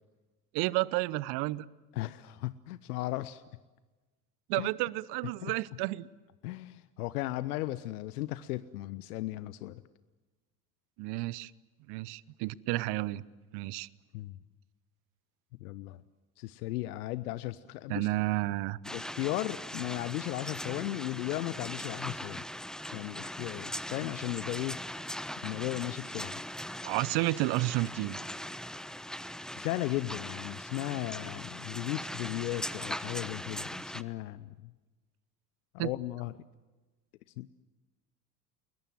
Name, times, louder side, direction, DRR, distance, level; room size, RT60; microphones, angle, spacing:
voice 1, 0.5-1.6 4.5-6.1 11.0-11.5 11.9-13.2 13.5-13.9 17.9-18.8 26.8-28.2 35.8-35.9, right 19 dB, 55° right, 21 dB, 0.9 m, -31 dB
voice 2, 1.9-3.4 4.6-4.7 5.4-5.5 6.4-9.8 14.1-14.4 15.6-16.0 16.4-18.1 18.9-22.4 22.9-24.8 25.4-26.4 29.6-34.7 35.7-36.3 37.4-37.6, left 17 dB, 70° left, 16 dB, 0.8 m, -36 dB
sound 1, 18.8-34.0, left 1 dB, ahead, 0.9 m, -40 dB
30.0 x 21.0 x 7.6 m, 1.2 s
hypercardioid pair, 65°, 47 cm